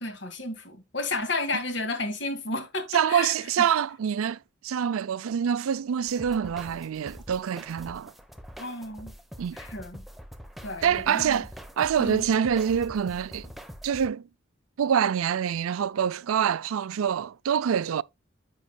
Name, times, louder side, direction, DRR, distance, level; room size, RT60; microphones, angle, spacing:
voice 1, 0.0-3.7 8.6-9.1 9.5-10.0 10.6-11.5 12.0-12.3, left 2 dB, 60° left, 2.1 m, -32 dB
voice 2, 2.9-8.1 9.4-9.6 10.8-11.5 11.8-13.5 13.8-14.2 14.8-18.0, right 8 dB, 90° right, 0.4 m, -26 dB
sound 1, 6.1-14.1, equal, ahead, 0.9 m, -44 dB
10.5 x 8.1 x 2.2 m
head